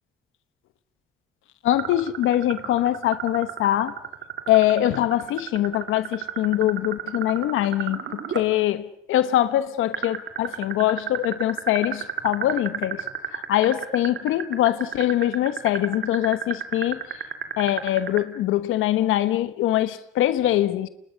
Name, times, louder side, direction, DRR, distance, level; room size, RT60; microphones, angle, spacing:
voice 1, 1.6-4.0 4.5-13.0 13.3-17.0 17.6-20.9, left 13 dB, 90° left, 1.2 m, -23 dB
sound 1, 1.7-8.5 9.9-18.2, right 9 dB, 65° right, 2.6 m, -31 dB
29.0 x 26.0 x 6.4 m
cardioid pair, 90°, 20 cm